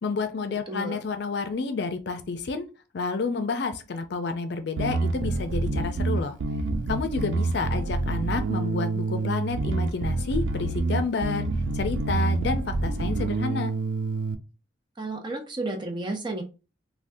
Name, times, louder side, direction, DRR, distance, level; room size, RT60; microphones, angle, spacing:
voice 1, 0.0-2.7 2.9-6.3 6.9-11.5 11.7-13.7, left 4 dB, 60° left, 8 dB, 0.5 m, -30 dB
voice 2, 0.7-1.0 15.0-16.4, right 2 dB, 25° right, 3 dB, 0.6 m, -32 dB
Bass guitar, 4.8-14.4, right 3 dB, 70° right, 0.4 m, -27 dB
3.5 x 2.2 x 2.6 m, 0.31 s
head